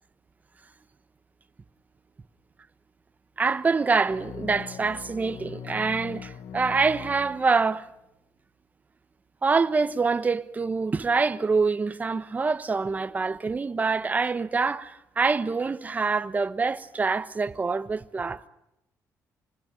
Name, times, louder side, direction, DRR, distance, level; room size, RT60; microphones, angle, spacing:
voice 1, 3.4-7.9 9.4-18.4, right 4 dB, 25° right, 1.0 m, -25 dB
sound 1, 4.1-7.9, left 8 dB, 85° left, 1.3 m, -41 dB
26.0 x 20.5 x 9.0 m
cardioid pair, 110°, 6 cm